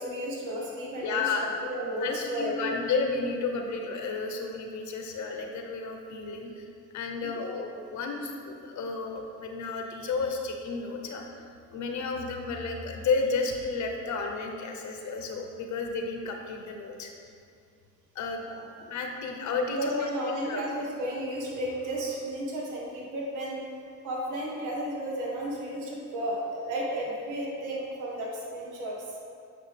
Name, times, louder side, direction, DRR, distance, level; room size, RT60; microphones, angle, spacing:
voice 1, 0.0-2.7 7.2-7.5 18.4-18.5 19.7-23.6 24.0-29.2, right 1 dB, 90° right, -3 dB, 1.4 m, -33 dB
voice 2, 1.0-1.5 2.0-6.7 6.9-11.4 11.7-17.1 18.1-18.4 18.8-20.6, left 4 dB, 70° left, 3 dB, 1.0 m, -32 dB
9.0 x 5.5 x 3.4 m, 2.4 s
cardioid pair, 90°, 30 cm